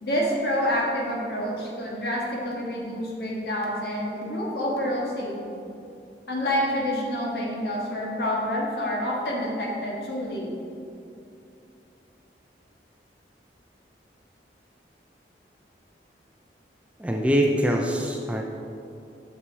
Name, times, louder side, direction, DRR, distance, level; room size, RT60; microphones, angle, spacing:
voice 1, 0.0-5.6 6.3-10.5, equal, 60° left, -3 dB, 1.6 m, -28 dB
voice 2, 17.0-18.4, equal, 5° right, 1 dB, 0.4 m, -23 dB
6.1 x 5.9 x 4.7 m, 2.7 s
head